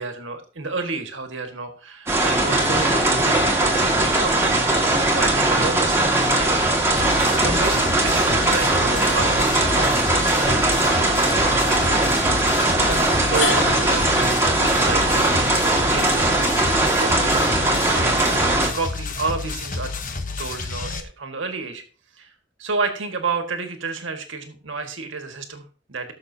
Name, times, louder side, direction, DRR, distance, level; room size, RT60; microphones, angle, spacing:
voice 1, 0.0-6.6 6.9-12.1 12.7-14.4 14.8-21.8 22.2-22.3 22.6-26.1, right 4 dB, 80° right, 6 dB, 1.8 m, -31 dB
sound 1, 2.1-18.7, right 2 dB, 15° right, 2.0 m, -20 dB
sound 2, 7.0-21.0, left 3 dB, 45° left, 1.1 m, -30 dB
sound 3, 13.0-19.0, left 3 dB, 85° left, 3.8 m, -34 dB
19.0 x 6.4 x 2.8 m, 0.38 s
head